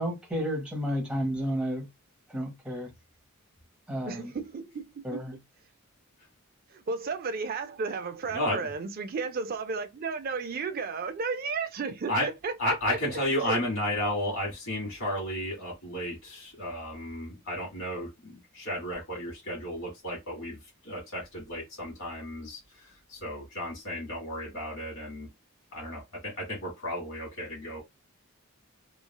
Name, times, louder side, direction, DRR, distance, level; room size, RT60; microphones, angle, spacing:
voice 1, 0.0-1.9 2.3-2.9 3.9-4.3 5.0-5.4, equal, 5° right, 0.8 m, -31 dB
voice 2, 4.0-5.2 6.7-13.6, right 4 dB, 45° right, 0.4 m, -33 dB
voice 3, 12.6-25.3 25.7-27.8, left 1 dB, 65° left, 1.4 m, -33 dB
3.1 x 2.3 x 2.2 m
head